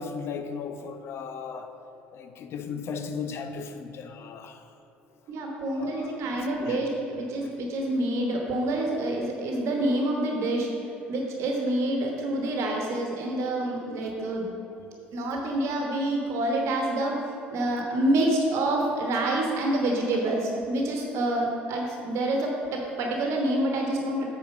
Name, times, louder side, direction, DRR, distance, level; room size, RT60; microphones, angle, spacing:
voice 1, 0.0-1.7 2.1-4.6 5.7-6.3 6.5-6.8 14.8-15.0 20.1-20.2, left 5 dB, 50° left, 8 dB, 0.6 m, -36 dB
voice 2, 5.3-10.7 11.1-14.5 15.1-17.2 17.5-24.3, right 1 dB, 55° right, 0 dB, 1.2 m, -27 dB
8.1 x 4.3 x 6.2 m, 2.9 s
figure-of-eight pair, 60°, 6 cm